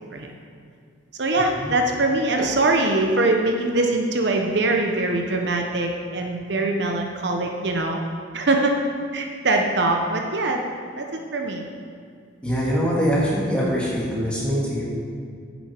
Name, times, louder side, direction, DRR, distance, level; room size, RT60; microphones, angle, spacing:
voice 1, 1.2-8.0 8.3-8.8 9.1-10.6 11.0-11.1 11.3-11.7, right 2 dB, 60° right, 2 dB, 0.7 m, -22 dB
voice 2, 12.4-14.8, equal, 5° left, -6 dB, 1.9 m, -23 dB
9.9 x 7.0 x 4.4 m, 2.3 s
head